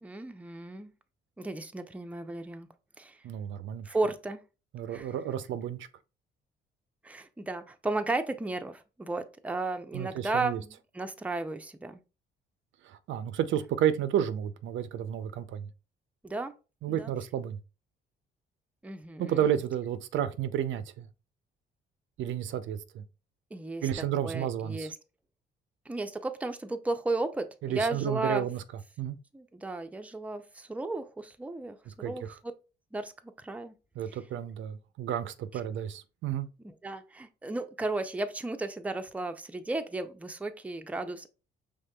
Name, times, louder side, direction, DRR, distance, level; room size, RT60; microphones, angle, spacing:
voice 1, 0.0-0.9 1.4-2.7 3.0-3.2 3.8-4.4 4.9-5.1 7.0-12.0 16.2-16.5 16.9-17.1 18.8-19.5 23.5-25.0 25.9-28.5 29.3-31.8 32.0-32.3 32.9-33.1 33.4-33.7 34.1-34.2 36.6-41.3, right 2 dB, 5° right, 0.5 m, -34 dB
voice 2, 3.2-3.9 4.7-5.9 9.9-10.6 12.8-15.7 16.8-17.6 19.2-21.1 22.2-23.0 23.8-24.9 27.6-28.6 29.0-29.2 32.0-32.3 34.0-36.5, right 10 dB, 75° right, 0.5 m, -31 dB
5.1 x 3.5 x 2.2 m
cardioid pair, 90°, 20 cm